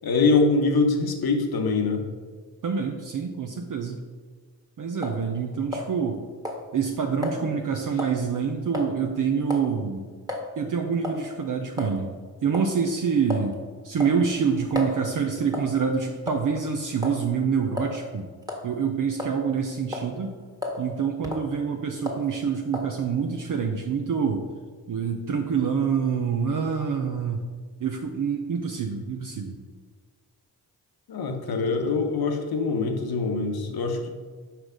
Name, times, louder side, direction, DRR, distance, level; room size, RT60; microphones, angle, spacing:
voice 1, 0.0-2.0 31.1-34.1, left 3 dB, 65° left, 4 dB, 1.1 m, -23 dB
voice 2, 2.6-4.0 4.8-6.2 6.7-10.0 10.6-12.1 12.4-13.6 13.8-18.3 18.6-20.3 20.8-24.4 24.9-27.4 27.8-29.6, right 6 dB, 55° right, 3 dB, 0.7 m, -26 dB
sound 1, 5.0-5.2 5.7-6.2 6.4-6.6 7.2-7.4 8.0-8.2 8.7-8.9 9.5-9.7 10.3-10.4 11.0-11.2 11.8-11.9 12.5-12.7 13.3-13.5 14.0-15.0 15.5-15.8 16.3-16.6 17.0-17.2 17.8-17.9 18.4-18.7 19.2-19.6 19.9-20.1 20.6-20.8 21.2-21.5 22.1-22.3 22.7-22.9, left 2 dB, 10° right, 1.6 m, -32 dB
5.9 x 4.9 x 5.1 m, 1.5 s
cardioid pair, 50°, 39 cm